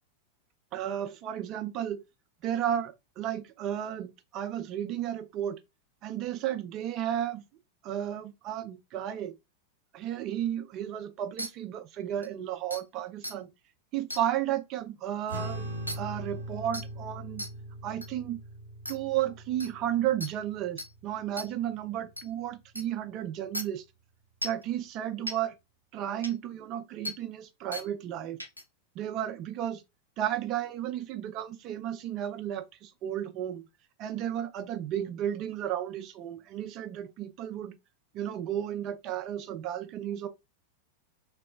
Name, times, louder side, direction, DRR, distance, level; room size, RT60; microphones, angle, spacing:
voice 1, 0.7-2.0 2.4-5.6 6.0-7.4 7.8-9.3 9.9-13.5 13.9-15.7 16.0-17.4 17.8-18.4 18.9-23.8 24.4-25.6 25.9-28.4 29.0-29.8 30.2-33.6 34.0-37.7 38.1-40.3, right 11 dB, 35° right, 0.4 m, -33 dB
sound 1, 11.4-11.5 12.2-12.3 12.7-12.8 13.2-13.3 14.1-14.2 15.9-16.0 16.7-16.9 17.4-17.5 18.0-18.1 18.9-19.0 19.6-19.7 20.2-20.3 20.8-20.9 21.4-21.5 22.2-22.3 22.8-22.9 23.5-23.6 24.4-24.6 25.3-25.4 26.2-26.3 27.0-27.2 27.7-27.9 28.4-28.6, equal, 90° left, 0.4 m, -36 dB
sound 2, 15.3-21.9, right 1 dB, 85° right, 0.9 m, -41 dB
3.0 x 2.1 x 2.2 m
figure-of-eight pair, 90°, 0 cm